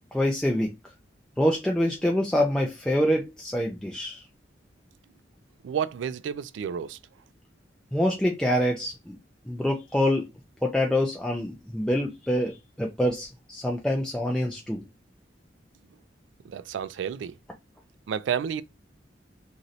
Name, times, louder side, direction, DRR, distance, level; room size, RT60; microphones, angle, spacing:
voice 1, 0.1-0.7 1.4-4.2 7.9-9.2 9.5-10.3 10.6-14.8, left 1 dB, 5° left, 0.4 m, -26 dB
voice 2, 5.6-7.0 16.4-17.4 18.1-18.6, right 8 dB, 80° right, 0.3 m, -30 dB
3.0 x 2.5 x 2.6 m
head